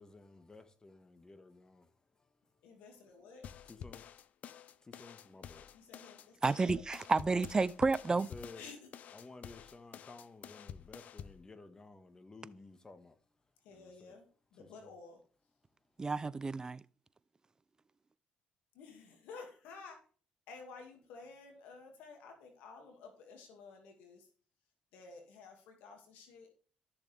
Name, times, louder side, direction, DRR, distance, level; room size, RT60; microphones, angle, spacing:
voice 1, 0.0-1.9 3.7-4.0 4.8-5.7 8.1-8.6 9.1-13.1 13.7-14.2 14.7-14.9, left 3 dB, 25° left, 1.5 m, -54 dB
voice 2, 2.6-3.5 5.7-6.8 8.5-8.9 13.6-14.2 14.5-15.2 18.7-20.0 20.5-24.3 24.9-26.5, left 4 dB, 85° left, 2.3 m, -53 dB
sound 1, 3.4-11.4, left 9 dB, 65° left, 0.6 m, -49 dB
voice 3, 6.4-8.3 16.0-16.8, right 3 dB, 25° right, 0.5 m, -31 dB
13.0 x 6.8 x 3.5 m
supercardioid pair, 75°, 3 cm